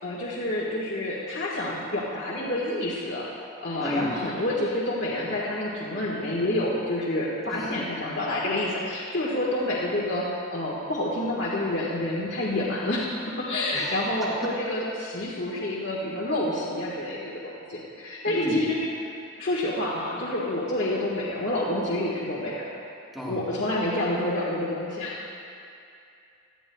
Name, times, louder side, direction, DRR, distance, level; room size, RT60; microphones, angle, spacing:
voice 1, 0.0-3.3 3.6-18.8 19.4-22.7 23.3-25.3, left 1 dB, 60° left, -6 dB, 1.5 m, -28 dB
voice 2, 3.8-4.1 7.5-7.8 13.7-14.5 18.3-18.6 23.1-23.4, equal, ahead, -5 dB, 1.9 m, -32 dB
18.0 x 13.0 x 2.3 m, 2.5 s
head